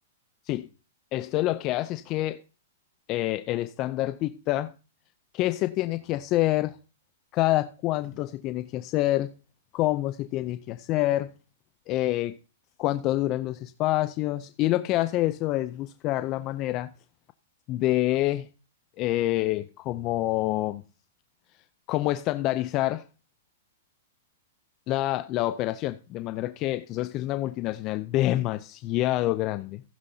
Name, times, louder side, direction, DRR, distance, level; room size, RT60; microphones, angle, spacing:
voice 1, 1.1-2.4 3.1-4.7 5.3-6.8 7.3-9.3 9.7-11.3 11.9-12.4 12.8-16.9 17.7-18.5 19.0-20.8 21.9-23.0 24.9-29.8, left 16 dB, 35° left, 0.5 m, -27 dB
15.0 x 9.6 x 2.7 m
hypercardioid pair, 140°, 0 cm